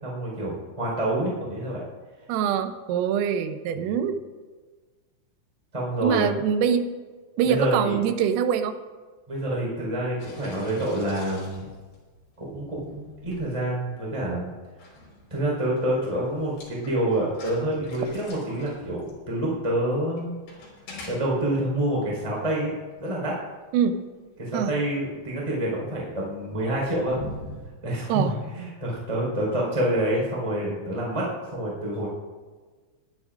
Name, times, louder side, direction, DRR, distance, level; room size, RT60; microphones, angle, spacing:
voice 1, 0.0-1.8 5.7-6.3 7.4-7.9 9.3-11.7 12.4-14.5 15.3-20.3 21.1-22.7 23.0-23.3 24.4-27.2 27.8-32.1, right 1 dB, 5° right, -4 dB, 4.0 m, -27 dB
voice 2, 2.3-4.2 6.0-6.9 7.4-8.8 23.7-24.0 24.5-24.7 28.1-28.4, right 8 dB, 90° right, 8 dB, 3.6 m, -24 dB
sound 1, 10.2-27.7, left 2 dB, 60° left, 6.8 m, -45 dB
22.5 x 14.0 x 2.6 m, 1.4 s
omnidirectional pair, 5.8 m